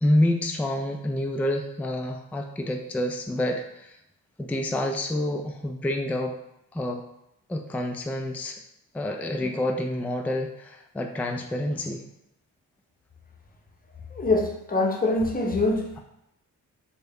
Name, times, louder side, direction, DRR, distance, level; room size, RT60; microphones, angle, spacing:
voice 1, 0.0-4.0 4.4-6.3 6.7-7.0 7.5-8.6 8.9-12.0, left 1 dB, 5° left, 3 dB, 0.3 m, -28 dB
voice 2, 14.2-15.8, left 2 dB, 20° left, 1 dB, 0.7 m, -24 dB
3.3 x 2.1 x 3.5 m, 0.83 s
supercardioid pair, 45°, 40 cm